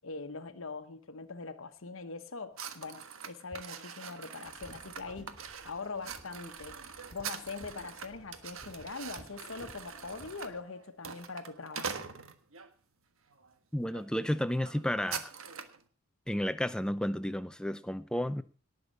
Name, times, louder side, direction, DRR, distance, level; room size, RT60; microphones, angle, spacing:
voice 1, 0.0-6.8 7.1-12.1, left 4 dB, 75° left, 1.1 m, -42 dB
sound 1, 2.6-12.7 13.3-13.5 13.9-14.1 14.3-15.8, right 7 dB, 75° right, 1.5 m, -44 dB
sound 2, 4.4-10.6, equal, 20° left, 2.5 m, -55 dB
voice 2, 13.7-15.3 16.3-18.4, equal, 5° left, 0.6 m, -32 dB
18.5 x 6.7 x 6.5 m
head